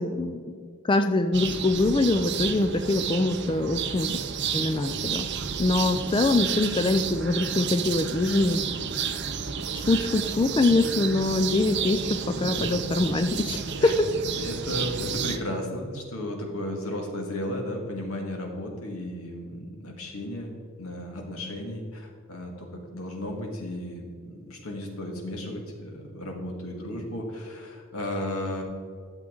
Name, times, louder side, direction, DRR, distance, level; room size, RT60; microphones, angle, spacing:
voice 1, 0.0-4.1 4.5-5.3 5.6-8.7 9.9-14.1, left 2 dB, 20° left, 8 dB, 0.3 m, -24 dB
sound 1, 1.3-15.4, right 7 dB, 50° right, 0.6 m, -31 dB
voice 2, 12.3-12.8 13.8-13.9 14.4-22.7 22.9-28.6, left 1 dB, 80° left, 1 dB, 1.9 m, -34 dB
12.0 x 7.4 x 3.8 m, 2.1 s
head